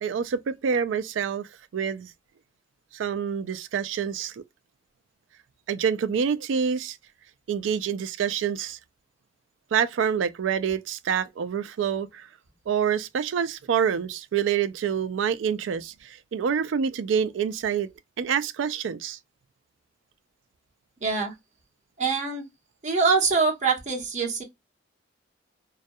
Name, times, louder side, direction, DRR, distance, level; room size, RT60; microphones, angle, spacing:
voice 1, 0.0-2.1 2.9-4.4 5.7-7.0 7.5-8.8 9.7-12.3 12.7-17.9 18.2-19.2, right 7 dB, 85° right, 0.3 m, -27 dB
voice 2, 21.0-21.3 22.0-22.5 22.8-24.4, right 4 dB, 40° right, 0.8 m, -24 dB
2.3 x 2.1 x 2.6 m
head